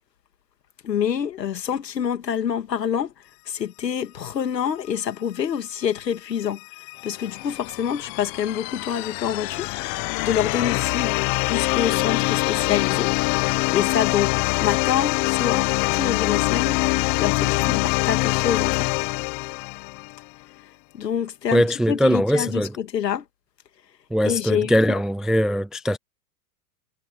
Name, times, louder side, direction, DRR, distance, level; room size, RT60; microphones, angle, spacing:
voice 1, 0.8-3.1 3.5-6.6 7.0-9.7 10.2-11.2 11.5-13.1 13.7-14.3 14.6-16.8 17.2-18.9 20.9-21.6 21.9-23.2 24.2-25.0, left 8 dB, 80° left, 2.6 m, -26 dB
sound 1, 6.4-20.2, left 28 dB, 40° left, 1.2 m, -24 dB
voice 2, 21.5-22.8 24.1-26.0, equal, ahead, 0.3 m, -21 dB
hypercardioid pair, 105°, 48 cm